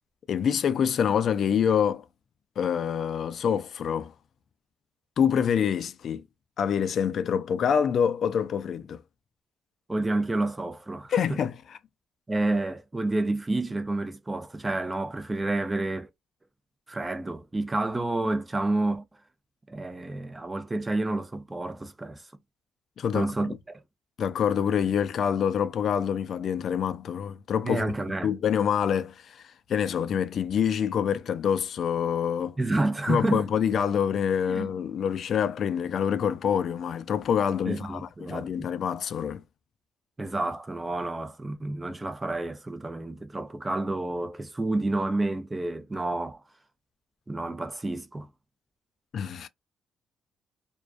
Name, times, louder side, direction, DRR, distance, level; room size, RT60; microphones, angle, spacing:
voice 1, 0.3-2.0 2.6-4.1 5.2-6.2 6.6-9.0 11.1-11.5 23.0-23.6 24.2-27.8 28.2-29.4 29.7-32.6 33.1-39.4 49.1-49.5, left 8 dB, 60° left, 0.3 m, -26 dB
voice 2, 9.9-11.4 12.3-16.1 16.9-19.0 19.7-22.3 23.1-23.8 27.6-28.3 32.6-33.5 34.5-34.7 37.6-38.7 40.2-46.4 47.3-48.3, right 2 dB, 20° right, 0.5 m, -29 dB
2.3 x 2.2 x 2.4 m
cardioid pair, 90°, 0 cm